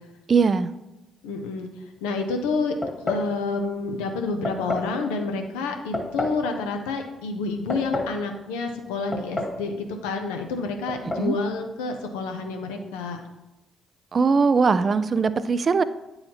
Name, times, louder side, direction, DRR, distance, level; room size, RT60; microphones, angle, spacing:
voice 1, 0.3-0.7 11.2-11.4 14.1-15.8, right 5 dB, 45° right, 14 dB, 0.4 m, -20 dB
voice 2, 1.2-1.7 2.0-2.7 3.0-9.8 10.0-13.2, left 4 dB, 80° left, 4 dB, 0.7 m, -29 dB
sound 1, 2.8-3.3 4.4-4.9 5.9-6.4 7.4-8.2 9.1-9.6 9.9-10.0 10.9-11.3, left 2 dB, 30° left, 1.8 m, -29 dB
9.5 x 4.0 x 2.9 m, 0.98 s
hypercardioid pair, 45°, 0 cm